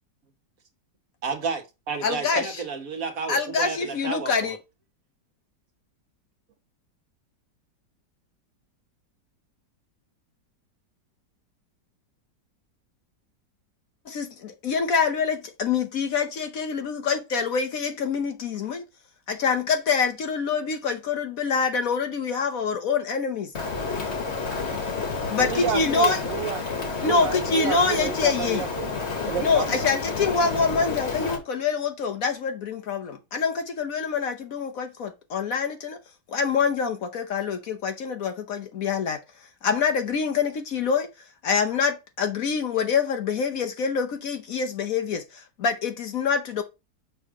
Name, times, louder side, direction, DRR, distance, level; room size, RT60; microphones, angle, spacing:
voice 1, 1.2-4.6, right 5 dB, 55° right, 1.5 m, -31 dB
voice 2, 2.0-2.6 3.3-4.6 14.1-18.8 19.3-23.5 25.3-26.2 27.0-28.6 29.4-36.0 36.3-39.2 39.6-41.1 41.4-45.2 45.6-46.6, left 5 dB, 60° left, 1.1 m, -25 dB
Rain, 23.5-31.4, left 4 dB, 40° left, 1.5 m, -30 dB
voice 3, 25.4-28.9 29.2-29.9, right 11 dB, 85° right, 1.4 m, -31 dB
6.5 x 3.2 x 4.9 m
omnidirectional pair, 1.9 m